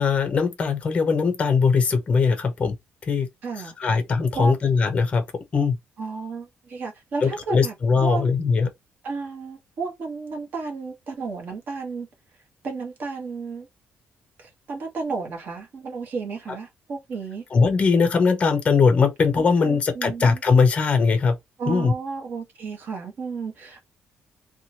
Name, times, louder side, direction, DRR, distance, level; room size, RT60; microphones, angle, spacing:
voice 1, 0.0-2.7 3.1-3.3 3.8-5.2 5.5-5.8 7.2-8.7 17.5-21.4 21.7-21.9, left 5 dB, 30° left, 0.5 m, -20 dB
voice 2, 3.4-3.9 4.3-4.5 6.0-7.7 8.0-8.3 9.0-12.1 12.6-13.7 14.4-17.4 19.3-20.4 21.6-23.8, right 4 dB, 50° right, 1.0 m, -32 dB
2.8 x 2.2 x 2.8 m
cardioid pair, 155°, 4 cm